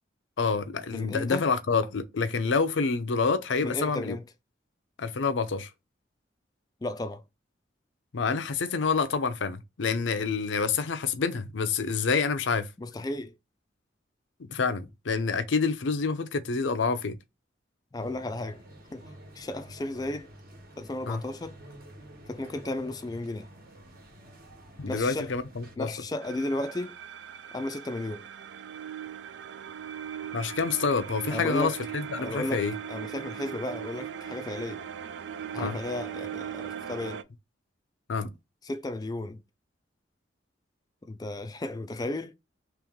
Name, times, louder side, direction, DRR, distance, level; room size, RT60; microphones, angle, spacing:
voice 1, 0.4-4.2 5.0-5.7 8.1-12.7 14.5-17.2 21.1-21.2 24.8-25.9 30.3-32.7 35.6-35.8 38.1-38.3, left 5 dB, 90° left, 0.6 m, -27 dB
voice 2, 0.9-1.5 3.6-4.2 6.8-7.2 12.8-13.3 17.9-18.6 18.9-19.0 19.4-20.3 20.8-21.6 22.3-23.5 24.9-25.3 25.8-27.0 27.5-28.3 31.3-31.8 32.2-34.8 35.5-37.2 38.6-39.4 41.1-42.3, left 2 dB, 20° left, 0.3 m, -34 dB
sound 1, 18.0-25.8, right 1 dB, 50° right, 1.2 m, -49 dB
sound 2, 26.2-37.2, right 8 dB, 75° right, 0.3 m, -39 dB
3.1 x 3.0 x 3.5 m
head